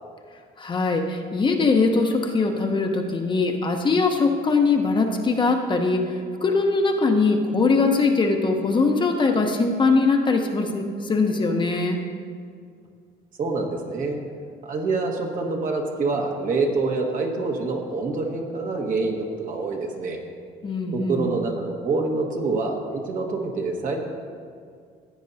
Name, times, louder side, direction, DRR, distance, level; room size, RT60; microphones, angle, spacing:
voice 1, 0.6-6.0 6.4-12.0 20.6-21.3, left 3 dB, 30° left, 3 dB, 0.9 m, -21 dB
voice 2, 13.4-14.2 14.6-20.2 20.9-24.0, right 3 dB, 55° right, 1 dB, 1.6 m, -26 dB
15.5 x 9.0 x 2.8 m, 2.1 s
cardioid pair, 110°, 17 cm